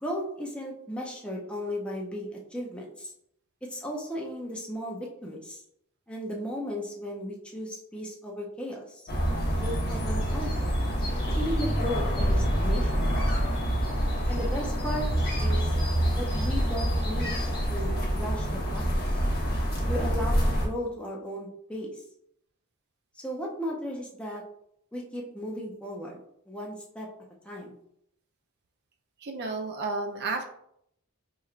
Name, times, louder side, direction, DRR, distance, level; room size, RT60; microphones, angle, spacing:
voice 1, 0.0-3.1 3.6-5.6 6.1-9.0 9.6-10.7 11.2-13.2 14.3-15.1 15.4-15.8 16.1-17.4 17.7-18.9 19.9-22.0 23.1-24.4 24.9-26.2 26.5-27.1 27.4-27.7, equal, 5° left, -2 dB, 0.5 m, -35 dB
sound 1, 9.1-20.7, equal, 45° left, 1.1 m, -26 dB
voice 2, 29.2-30.5, right 3 dB, 50° right, 3 dB, 0.5 m, -32 dB
4.6 x 3.0 x 2.4 m, 0.73 s
head